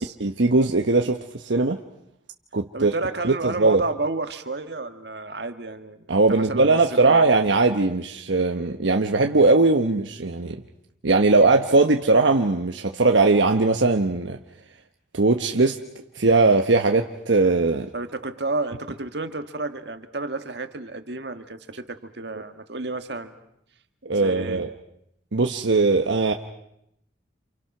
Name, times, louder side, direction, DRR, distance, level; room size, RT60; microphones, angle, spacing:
voice 1, 0.2-1.8 2.5-2.9 3.2-3.8 6.1-10.6 11.0-14.4 15.1-15.8 16.1-17.9 24.0-24.7 25.3-26.3, right 3 dB, 85° right, 4 dB, 1.1 m, -20 dB
voice 2, 2.7-7.4 17.9-23.4 24.1-24.6, right 3 dB, 65° right, 8 dB, 1.7 m, -31 dB
28.5 x 28.5 x 6.0 m, 0.78 s
head